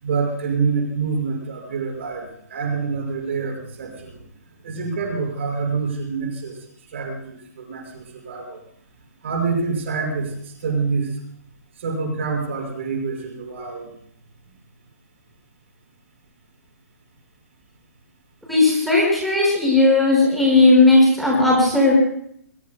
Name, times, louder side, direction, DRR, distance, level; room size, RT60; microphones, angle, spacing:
voice 1, 0.0-4.1 4.6-6.6 6.9-8.6 9.2-11.1 11.8-13.9, right 4 dB, 50° right, 0 dB, 5.9 m, -26 dB
voice 2, 18.5-21.9, left 2 dB, ahead, -5 dB, 5.5 m, -16 dB
22.5 x 22.0 x 2.3 m, 0.68 s
figure-of-eight pair, 125°, 9 cm